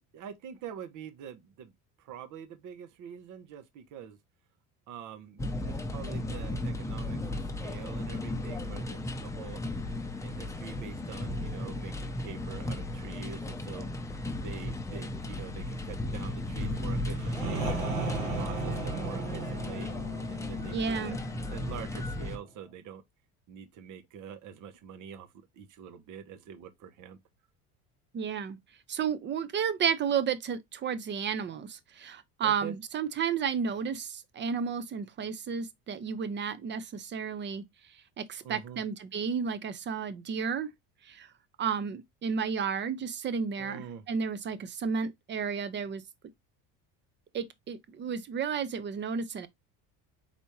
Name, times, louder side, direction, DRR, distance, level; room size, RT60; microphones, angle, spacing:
voice 1, 0.1-1.7 2.0-4.2 4.9-9.6 10.2-13.9 14.4-17.6 18.1-19.9 20.3-21.2 21.5-23.0 23.5-25.3 25.5-27.2 32.4-32.8 38.4-38.8 43.6-44.0, right 8 dB, 55° right, 0.9 m, -45 dB
sound 1, 5.4-22.4, left 1 dB, 10° left, 0.6 m, -35 dB
sound 2, 16.6-22.4, right 3 dB, 75° right, 1.6 m, -37 dB
voice 2, 20.7-21.2 28.1-28.6 28.9-37.6 38.2-40.7 41.1-41.3 41.6-43.8 44.1-46.0 47.3-49.5, right 6 dB, 30° right, 0.6 m, -32 dB
4.1 x 3.5 x 3.0 m
cardioid pair, 115°, 36 cm